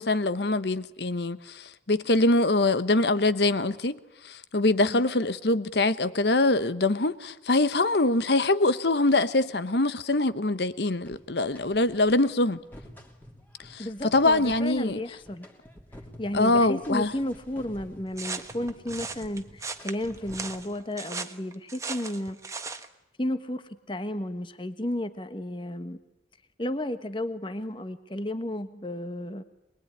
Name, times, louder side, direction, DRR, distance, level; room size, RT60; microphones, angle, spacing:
voice 1, 0.0-4.0 4.2-12.6 13.6-13.9 14.1-15.0 16.3-17.1, left 2 dB, 65° left, 1.1 m, -24 dB
sound 1, 11.1-12.1 12.5-20.8, equal, 10° left, 2.9 m, -49 dB
voice 2, 13.8-15.5 16.2-22.4 23.2-26.0 26.6-29.4, left 1 dB, 25° left, 1.3 m, -33 dB
sound 2, 18.2-22.9, right 4 dB, 15° right, 1.2 m, -37 dB
24.0 x 21.5 x 9.8 m
head